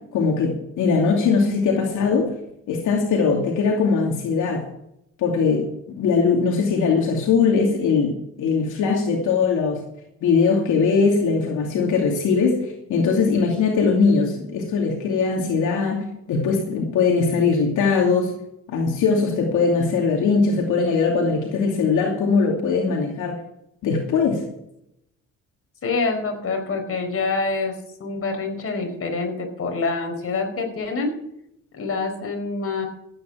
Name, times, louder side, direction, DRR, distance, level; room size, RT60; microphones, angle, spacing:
voice 1, 0.1-2.3 2.7-4.6 5.2-5.7 5.9-9.8 10.2-18.3 18.7-23.4 23.8-24.4, left 5 dB, 85° left, 0 dB, 2.7 m, -20 dB
voice 2, 25.8-31.1 31.7-32.9, left 3 dB, 50° left, 3 dB, 4.8 m, -26 dB
15.0 x 9.5 x 6.3 m, 0.79 s
cardioid pair, 90°, 30 cm